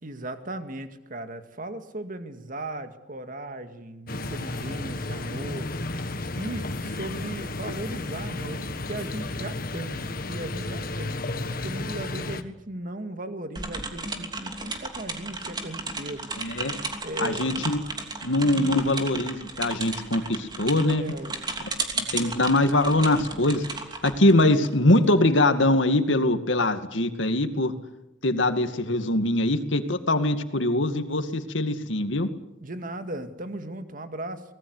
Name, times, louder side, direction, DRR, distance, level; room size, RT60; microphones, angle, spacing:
voice 1, 0.0-5.7 6.4-11.2 11.5-16.3 17.0-17.6 18.5-18.8 21.0-21.4 32.6-34.4, right 1 dB, 45° right, 8 dB, 2.1 m, -37 dB
sound 1, 4.1-12.4, left 2 dB, 50° left, 1.7 m, -33 dB
sound 2, 13.6-25.1, right 3 dB, 25° right, 3.0 m, -34 dB
voice 2, 16.4-16.7 17.2-17.8 18.2-21.0 21.9-23.6 24.0-27.7 28.2-32.3, left 1 dB, 85° left, 8 dB, 2.2 m, -22 dB
25.5 x 19.5 x 8.0 m, 0.91 s
head